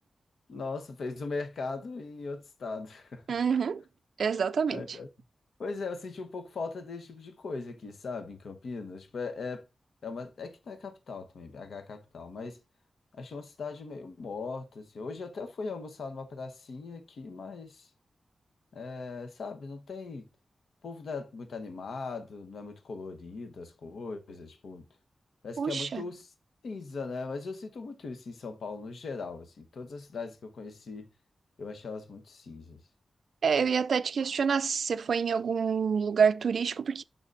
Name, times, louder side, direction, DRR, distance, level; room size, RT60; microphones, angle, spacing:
voice 1, 0.5-3.2 4.7-5.1 5.6-9.7 10.0-12.6 13.1-17.9 18.7-20.3 20.8-24.9 25.4-26.3 26.6-31.1 31.6-32.8, left 4 dB, 80° left, 1.0 m, -39 dB
voice 2, 3.3-3.8 4.2-5.0 25.6-26.0 33.4-37.0, right 6 dB, 75° right, 0.3 m, -27 dB
11.0 x 3.9 x 2.5 m
wide cardioid pair, 105°, 0 cm